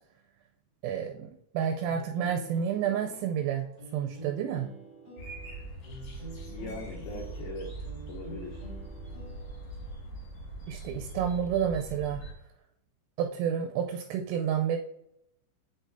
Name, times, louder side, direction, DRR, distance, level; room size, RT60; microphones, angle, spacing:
voice 1, 0.8-3.7 3.9-4.7 10.7-12.2 13.2-14.8, right 8 dB, 85° right, 3 dB, 3.1 m, -30 dB
sound 1, 1.9-9.9, right 1 dB, 35° right, 2.0 m, -48 dB
sound 2, 5.2-12.3, right 2 dB, 55° left, 2.0 m, -41 dB
voice 2, 6.5-8.7, left 3 dB, 85° left, -4 dB, 2.1 m, -41 dB
7.7 x 6.2 x 2.6 m, 0.75 s
omnidirectional pair, 5.9 m